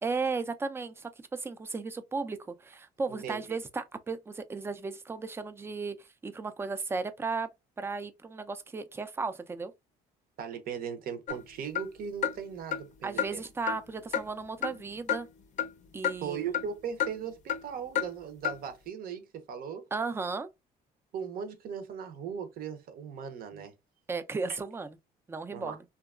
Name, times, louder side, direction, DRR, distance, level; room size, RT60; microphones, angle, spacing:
voice 1, 0.0-6.0 6.2-7.5 7.8-9.7 13.0-15.3 15.9-16.5 19.9-20.5 24.1-25.0 25.3-25.8, right 4 dB, 15° right, 0.3 m, -35 dB
voice 2, 3.1-3.6 10.4-13.4 16.2-19.8 21.1-23.7 25.5-25.8, right 7 dB, 60° right, 0.6 m, -38 dB
sound 1, 11.3-11.4 11.7-11.9 12.2-12.4 12.7-12.8 13.2-13.3 13.7-13.8 14.1-14.3 14.6-14.8 15.1-15.2 15.6-15.7 16.0-16.1 16.5-16.7 17.0-17.1 17.5-17.6 17.9-18.1 18.4-18.6, left 9 dB, 45° left, 0.5 m, -30 dB
2.7 x 2.3 x 2.3 m
cardioid pair, 110°, 17 cm